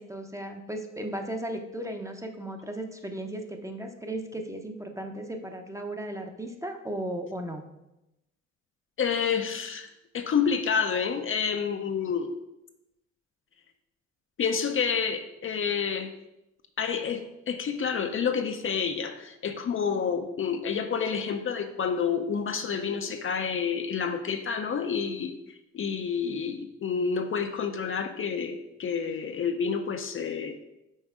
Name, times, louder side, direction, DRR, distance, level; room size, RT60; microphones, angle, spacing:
voice 1, 0.0-7.7, right 1 dB, 10° right, 4 dB, 0.7 m, -36 dB
voice 2, 9.0-9.9 10.1-12.3 14.4-16.1 16.8-30.6, left 6 dB, 45° left, 6 dB, 0.6 m, -29 dB
5.4 x 4.1 x 4.9 m, 0.92 s
cardioid pair, 90°, 30 cm